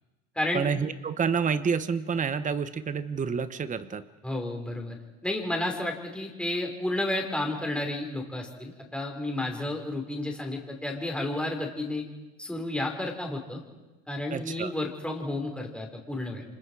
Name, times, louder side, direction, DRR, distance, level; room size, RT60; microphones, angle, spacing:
voice 1, 0.5-4.0 14.3-14.7, right 6 dB, 20° right, 12 dB, 1.0 m, -28 dB
voice 2, 4.2-5.0 5.2-12.0 12.4-13.6 14.1-16.4, left 1 dB, 5° left, 1 dB, 5.0 m, -31 dB
29.5 x 26.0 x 4.9 m, 1.2 s
supercardioid pair, 110°, 35 cm